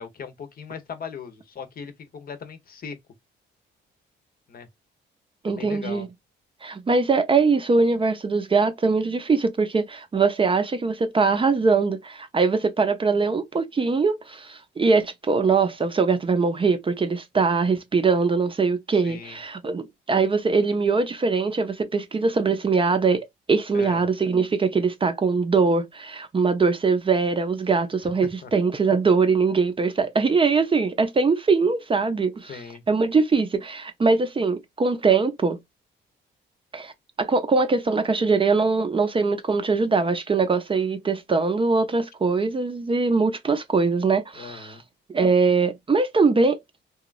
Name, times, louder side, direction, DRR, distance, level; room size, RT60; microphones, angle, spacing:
voice 1, 0.0-3.0 4.5-4.7 5.5-6.1 18.9-19.4 23.7-24.0 28.4-28.5 32.5-32.8 44.4-44.8, left 6 dB, 50° left, 0.7 m, -38 dB
voice 2, 5.4-6.1 6.6-32.6 32.9-35.6 36.7-36.9 37.2-44.7 45.1-46.6, right 4 dB, 25° right, 0.5 m, -22 dB
3.0 x 2.3 x 2.3 m
cardioid pair, 90°, 20 cm